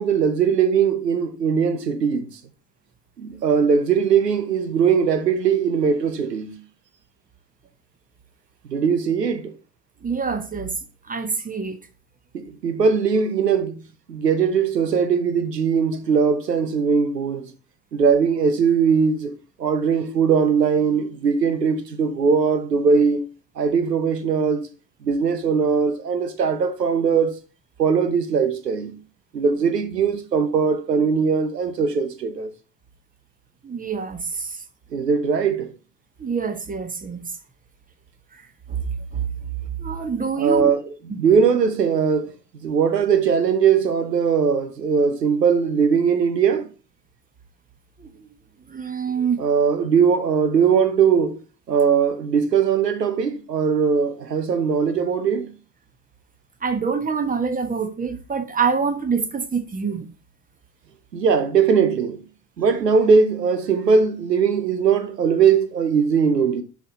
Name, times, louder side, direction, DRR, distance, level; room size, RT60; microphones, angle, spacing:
voice 1, 0.0-2.3 3.2-6.6 8.7-9.5 12.3-13.8 14.1-17.5 17.9-19.3 19.6-23.2 23.6-24.7 25.0-27.4 27.8-29.0 29.3-32.5 34.9-35.7 40.4-40.8 41.2-42.3 42.6-46.7 49.4-51.4 51.7-55.5 61.1-62.2 62.6-66.6, right 6 dB, 85° right, 1.0 m, -20 dB
voice 2, 10.0-10.8 11.1-11.8 33.6-34.6 36.2-37.3 38.7-38.8 39.1-39.2 39.8-40.7 41.1-41.2 48.0-48.3 48.7-49.5 56.6-60.1, right 5 dB, 15° right, 1.3 m, -26 dB
7.2 x 5.0 x 4.0 m
figure-of-eight pair, 65°, 48 cm